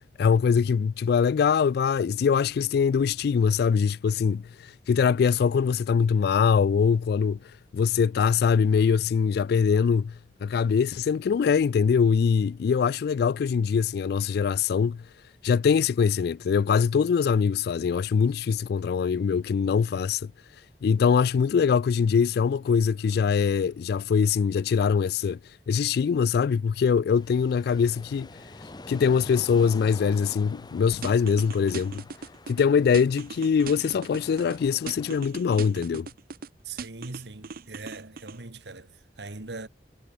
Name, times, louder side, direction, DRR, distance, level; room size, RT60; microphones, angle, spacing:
voice 1, 0.2-7.4 7.7-10.1 10.4-15.0 15.4-20.3 20.8-25.4 25.7-28.3 28.9-32.0 32.5-36.1, left 6 dB, 60° left, 0.3 m, -23 dB
sound 1, 27.1-35.2, left 2 dB, 25° left, 0.9 m, -46 dB
sound 2, 31.0-32.6 32.9-34.6 34.9-36.5 36.8-38.4, right 5 dB, 55° right, 0.7 m, -39 dB
voice 2, 36.6-39.7, right 3 dB, 70° right, 1.7 m, -40 dB
head